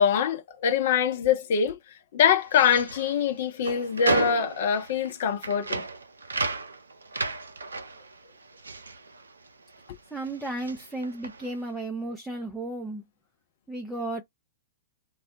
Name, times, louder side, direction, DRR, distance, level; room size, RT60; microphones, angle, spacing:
voice 1, 0.0-1.8 2.1-5.8, left 7 dB, 50° left, 0.7 m, -24 dB
sound 1, 2.4-9.9 10.2-11.6, right 4 dB, 70° right, 0.3 m, -33 dB
voice 2, 10.1-13.0 13.7-14.2, right 2 dB, ahead, 0.5 m, -34 dB
2.2 x 2.1 x 2.7 m
figure-of-eight pair, 105°, 0 cm